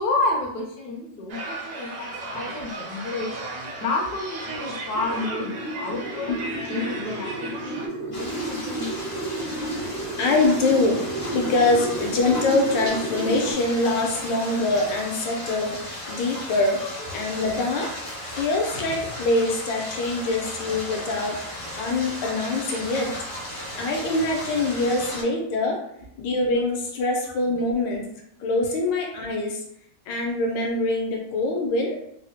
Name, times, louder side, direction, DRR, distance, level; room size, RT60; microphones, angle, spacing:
voice 1, 0.0-3.3 3.8-6.3 6.7-8.9 11.8-11.9 16.8-16.9 18.7-18.8 25.1-25.2, left 2 dB, 70° left, -1 dB, 1.1 m, -30 dB
sound 1, 1.3-7.9, right 2 dB, 70° right, 1.1 m, -35 dB
sound 2, 4.9-13.5, right 1 dB, 55° right, 0.3 m, -32 dB
sound 3, 8.1-25.2, left 1 dB, 35° left, 0.5 m, -35 dB
voice 2, 10.2-11.0 11.3-16.8 17.1-17.9 18.3-23.1 23.8-25.8 26.2-28.1 28.4-29.6 30.1-32.0, left 2 dB, 85° left, 1 dB, 1.4 m, -24 dB
3.6 x 2.1 x 2.7 m, 0.74 s
omnidirectional pair, 1.9 m